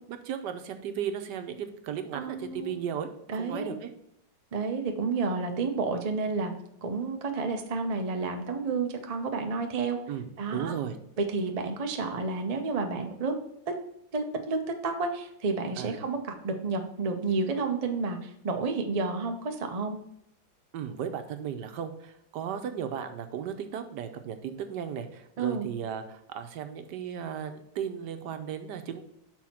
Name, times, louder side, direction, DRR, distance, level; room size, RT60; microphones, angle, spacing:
voice 1, 0.0-3.9 10.1-11.0 15.8-16.0 20.7-29.0, right 8 dB, 70° right, 8 dB, 1.3 m, -35 dB
voice 2, 2.1-2.8 3.3-3.8 4.5-6.5 6.8-10.0 10.4-10.7 11.2-13.3 13.7-13.8 14.1-20.0 25.4-25.7, right 4 dB, 55° right, 4 dB, 0.4 m, -30 dB
6.2 x 4.2 x 5.7 m, 0.77 s
omnidirectional pair, 2.0 m